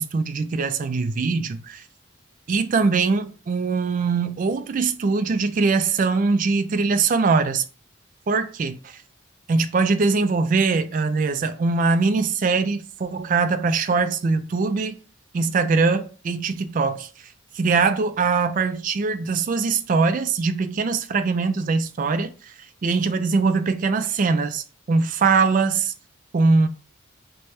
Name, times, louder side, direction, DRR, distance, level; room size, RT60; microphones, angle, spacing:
voice 1, 0.0-1.8 2.5-7.6 8.3-8.7 9.5-15.0 15.3-17.1 17.5-22.5 22.8-25.9 26.3-26.7, right 4 dB, 40° right, 0.3 m, -22 dB
3.1 x 2.2 x 4.2 m
head